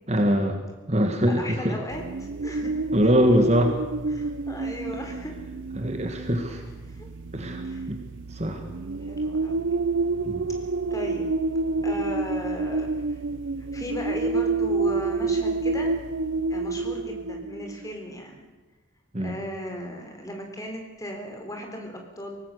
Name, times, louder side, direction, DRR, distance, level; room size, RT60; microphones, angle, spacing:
voice 1, 0.1-0.6 0.9-1.8 2.9-3.8 5.8-6.6 7.3-7.6 7.9-8.0 8.3-8.6 10.3-10.4 19.1-19.3, equal, 35° right, 5 dB, 1.9 m, -23 dB
voice 2, 1.3-2.8 4.1-5.3 6.9-7.1 7.6-7.9 9.0-9.6 10.9-11.3 11.8-13.2 13.7-15.9 16.5-18.4 19.2-22.4, equal, 15° left, 3 dB, 3.8 m, -36 dB
sound 1, 1.9-17.9, right 3 dB, 70° right, 0.6 m, -29 dB
24.5 x 18.5 x 6.7 m, 1.1 s
head